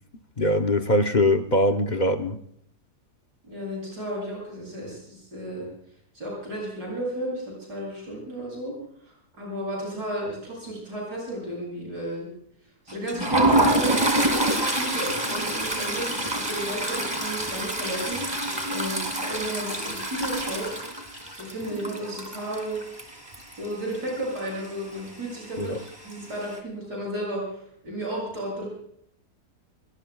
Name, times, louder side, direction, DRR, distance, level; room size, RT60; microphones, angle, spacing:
voice 1, 0.4-2.4 25.6-25.8, left 1 dB, 45° left, 6 dB, 0.6 m, -22 dB
voice 2, 3.4-5.7 6.1-8.8 9.4-12.3 12.9-14.1 14.6-20.7 21.3-22.8 23.6-28.7, right 1 dB, 85° right, -4 dB, 8.1 m, -33 dB
Toilet flush, 12.9-23.7 23.9-24.2 24.5-24.7 25.6-26.1, right 1 dB, 15° right, 2.4 m, -26 dB
29.0 x 18.0 x 2.3 m, 0.67 s
omnidirectional pair, 1.7 m